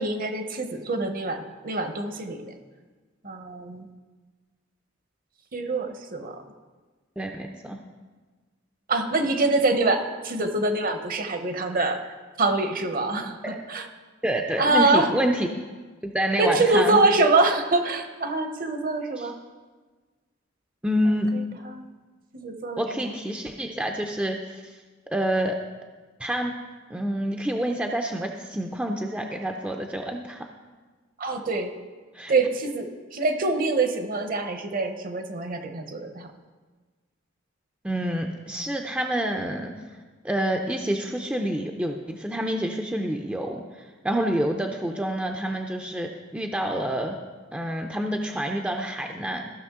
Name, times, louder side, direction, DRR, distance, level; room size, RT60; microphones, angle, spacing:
voice 1, 0.0-2.5 3.2-3.9 5.5-6.4 8.9-13.4 13.7-13.8 14.6-15.1 16.4-19.3 21.3-21.8 22.3-23.1 31.2-31.7 32.3-36.3, right 2 dB, 45° right, 7 dB, 0.8 m, -25 dB
voice 2, 7.2-7.8 13.4-13.6 14.2-15.5 16.0-17.0 19.2-19.3 20.8-21.3 22.8-24.6 25.1-25.6 26.2-26.5 26.9-30.4 32.1-32.3 37.8-39.8 40.2-43.6 44.0-47.2 47.5-49.5, right 1 dB, 5° right, 2 dB, 0.5 m, -27 dB
14.5 x 6.0 x 3.7 m, 1.4 s
head